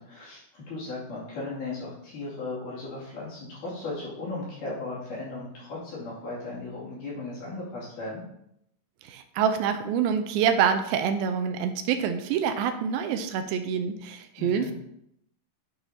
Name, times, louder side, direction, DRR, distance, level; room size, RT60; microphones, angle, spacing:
voice 1, 0.0-8.2 14.4-14.7, left 2 dB, 60° left, -7 dB, 3.8 m, -36 dB
voice 2, 9.0-14.7, right 7 dB, 85° right, 7 dB, 2.5 m, -26 dB
10.0 x 5.8 x 2.7 m, 0.77 s
omnidirectional pair, 4.2 m